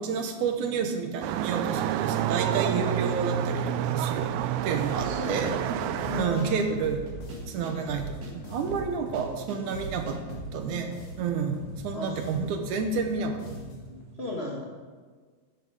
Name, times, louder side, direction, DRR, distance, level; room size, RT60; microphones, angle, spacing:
voice 1, 0.0-4.3 4.6-7.1 7.4-10.2 10.5-10.9 11.2-13.7, right 5 dB, 70° right, 5 dB, 2.2 m, -30 dB
sound 1, 1.2-6.2, right 10 dB, 90° right, 1.7 m, -28 dB
sound 2, 4.1-14.0, equal, 60° left, 3.4 m, -44 dB
voice 2, 4.9-5.8 6.1-6.8 11.9-12.2 14.2-14.6, left 1 dB, 80° left, -3 dB, 0.5 m, -35 dB
sound 3, 5.0-10.5, right 3 dB, 55° right, 3.0 m, -40 dB
11.0 x 10.5 x 4.8 m, 1.5 s
omnidirectional pair, 4.0 m